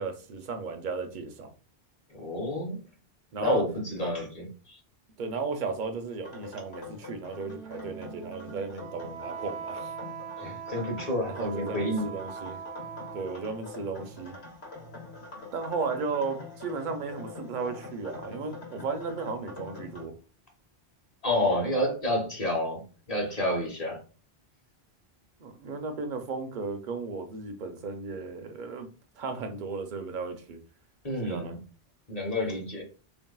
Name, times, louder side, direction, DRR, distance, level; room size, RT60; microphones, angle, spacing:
voice 1, 0.0-1.5 3.3-3.6 5.2-9.9 11.4-12.6 13.1-14.3 15.5-20.1 25.4-28.9 29.2-30.6 31.2-31.6, right 4 dB, 55° right, 0.6 m, -35 dB
voice 2, 2.2-2.8 3.4-4.8 10.4-12.1 21.2-22.8 23.1-24.0 31.0-31.6 32.1-32.8, left 1 dB, 40° left, 0.9 m, -29 dB
sound 1, 6.2-20.0, left 3 dB, 85° left, 1.2 m, -45 dB
Wind instrument woodwind instrument, 7.4-13.6, right 7 dB, 85° right, 0.8 m, -41 dB
3.4 x 2.6 x 2.2 m
omnidirectional pair, 1.1 m